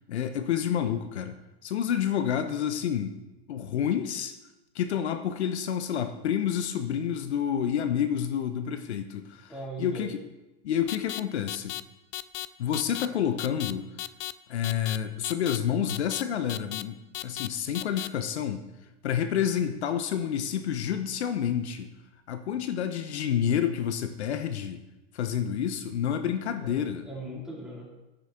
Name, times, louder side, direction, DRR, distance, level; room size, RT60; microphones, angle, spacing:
voice 1, 0.1-1.3 1.6-3.2 3.5-4.3 4.7-9.5 9.8-10.2 10.6-11.8 12.6-13.9 14.5-18.6 19.0-21.9 22.3-24.8 25.1-27.1, left 9 dB, 85° left, 9 dB, 0.9 m, -29 dB
voice 2, 9.5-10.1 26.6-26.7 27.1-27.9, right 1 dB, ahead, -5 dB, 3.7 m, -39 dB
sound 1, 10.9-11.2 11.5-11.8 12.1-12.5 12.7-13.1 13.4-13.7 14.0-14.3 14.6-15.0 15.2-15.6 15.9-16.2 16.5-16.8 17.1-17.5 17.7-18.1, left 18 dB, 35° left, 0.4 m, -35 dB
9.7 x 9.1 x 4.4 m, 0.98 s
hypercardioid pair, 115°, 33 cm